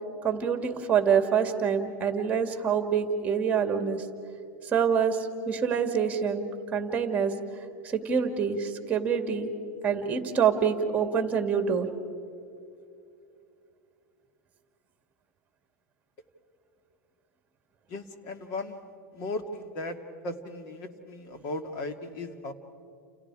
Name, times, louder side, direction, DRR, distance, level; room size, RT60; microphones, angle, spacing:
voice 1, 0.2-4.0 4.7-5.2 5.5-6.5 6.7-7.3 7.8-9.5 9.8-11.9, right 7 dB, 15° right, 6 dB, 2.4 m, -26 dB
voice 2, 17.9-18.8 19.1-20.0 20.2-22.5, left 2 dB, 45° left, 7 dB, 2.1 m, -36 dB
30.0 x 29.0 x 4.9 m, 2.5 s
supercardioid pair, 145°, 9 cm